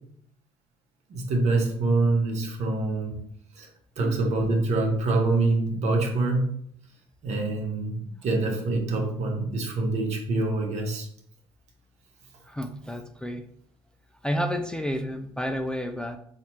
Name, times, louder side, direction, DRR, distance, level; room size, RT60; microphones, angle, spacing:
voice 1, 1.1-3.1 3.6-3.7 4.0-6.5 7.2-11.1, right 2 dB, 60° right, 2 dB, 1.0 m, -25 dB
voice 2, 12.5-13.5 14.2-16.2, equal, 5° left, 6 dB, 0.3 m, -30 dB
4.1 x 2.5 x 3.0 m, 0.66 s
hypercardioid pair, 60°, 13 cm